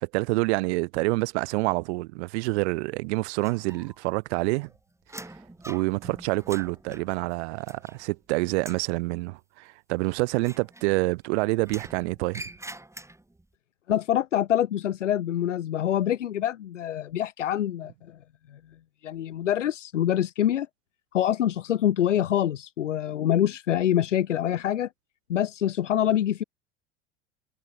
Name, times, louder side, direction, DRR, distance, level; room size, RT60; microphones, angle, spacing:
voice 1, 0.0-4.7 5.7-12.4, right 25 dB, 65° right, 1.0 m, -27 dB
sound 1, 3.4-4.2 4.5-8.2 8.5-8.9 10.4-11.3 11.6-13.4, right 2 dB, 10° right, 6.6 m, -45 dB
voice 2, 13.9-18.2 18.5-18.6 19.0-20.7 21.1-24.9 25.3-26.4, left 11 dB, 85° left, 0.9 m, -25 dB
hypercardioid pair, 70°, 36 cm